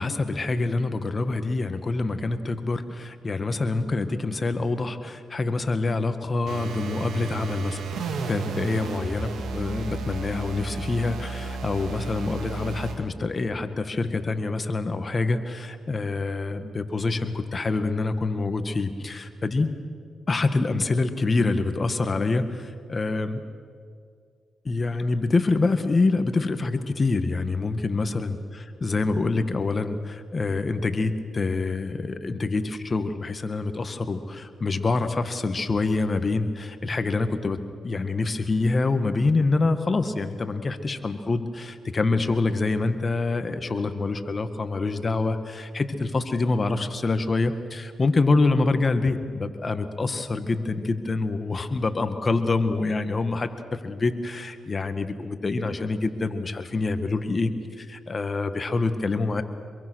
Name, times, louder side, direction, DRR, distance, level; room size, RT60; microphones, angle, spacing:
voice 1, 0.0-7.8 8.3-19.7 20.3-23.4 24.6-28.4 28.8-57.5 57.8-59.4, left 3 dB, 40° left, 9 dB, 1.7 m, -26 dB
sound 1, 6.5-13.0, right 4 dB, 80° right, 2.6 m, -33 dB
26.0 x 22.5 x 6.4 m, 2.1 s
cardioid pair, 65°, 0 cm